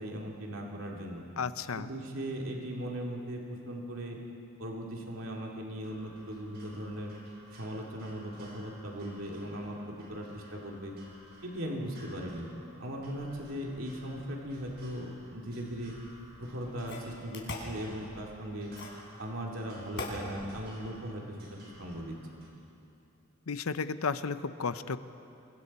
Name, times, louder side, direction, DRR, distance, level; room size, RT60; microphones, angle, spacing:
voice 1, 0.0-1.3 1.8-4.2 4.6-7.1 7.5-9.8 10.1-10.9 11.4-12.5 12.8-15.9 16.4-18.7 19.2-21.4 21.8-22.5, equal, 70° right, -1 dB, 2.6 m, -38 dB
voice 2, 1.4-1.9 23.5-25.0, left 5 dB, 85° left, 12 dB, 0.7 m, -33 dB
sound 1, 5.8-22.5, right 1 dB, 45° right, 4.9 m, -55 dB
sound 2, 16.1-16.2 16.9-17.8 18.8-19.1 20.0-20.2, left 2 dB, 55° left, 4.0 m, -39 dB
28.5 x 23.5 x 4.3 m, 2.8 s
head